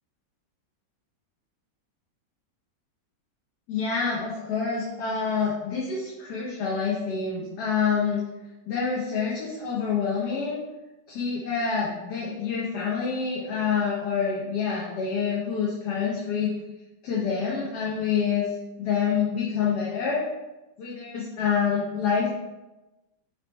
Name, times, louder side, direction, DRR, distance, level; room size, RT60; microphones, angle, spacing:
voice 1, 3.7-8.2 8.7-10.6 11.1-16.5 17.0-18.5 18.8-20.2 20.8-22.3, left 6 dB, 70° left, -5 dB, 1.2 m, -27 dB
4.0 x 3.0 x 3.2 m, 1.1 s
omnidirectional pair, 2.0 m